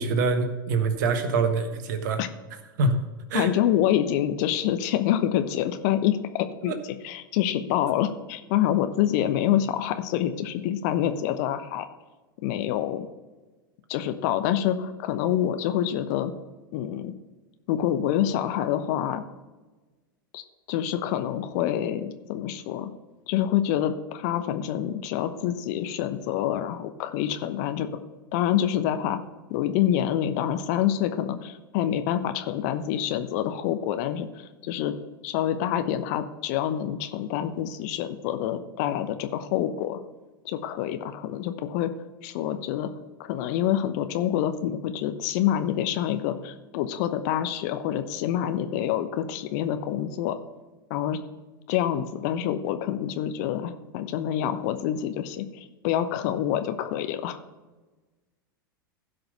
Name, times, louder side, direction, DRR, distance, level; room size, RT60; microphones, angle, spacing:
voice 1, 0.0-2.2 2.8-3.5 6.6-6.8, right 3 dB, 55° right, 8 dB, 1.4 m, -25 dB
voice 2, 3.3-6.7 7.0-11.9 12.4-13.1 13.9-16.3 16.7-17.1 17.7-19.2 20.3-20.4 20.7-22.9 23.3-27.9 28.3-29.2 29.5-34.3 34.6-34.9 35.2-40.0 40.4-41.9 42.2-42.9 43.2-50.4 50.9-51.2 51.7-57.4, left 11 dB, 50° left, 9 dB, 0.9 m, -26 dB
15.5 x 5.3 x 5.5 m, 1.2 s
figure-of-eight pair, 90°, 12 cm